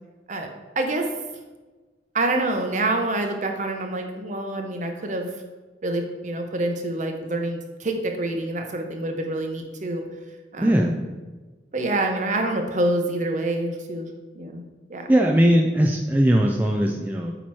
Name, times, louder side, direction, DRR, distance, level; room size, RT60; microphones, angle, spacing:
voice 1, 0.8-1.1 2.1-5.3 5.8-10.0 10.5-10.9 11.7-14.1 14.3-14.6 14.9-15.1, right 2 dB, 40° right, 4 dB, 0.7 m, -26 dB
voice 2, 10.6-11.0 15.1-17.3, equal, 10° right, 0 dB, 0.3 m, -19 dB
8.2 x 3.0 x 4.6 m, 1.3 s
head